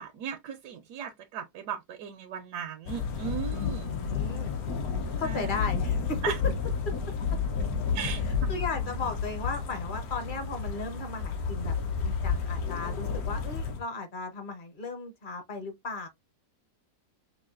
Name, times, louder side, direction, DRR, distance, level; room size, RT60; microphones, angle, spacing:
voice 1, 0.0-4.0 5.2-5.6 6.2-6.4 7.9-8.5, right 8 dB, 80° right, 1.2 m, -37 dB
sound 1, 2.9-13.8, left 6 dB, 65° left, 1.2 m, -31 dB
voice 2, 3.5-4.5 5.2-6.2 6.9-7.0 8.2-16.1, left 3 dB, 40° left, 0.8 m, -36 dB
5.5 x 2.4 x 2.4 m
omnidirectional pair, 1.7 m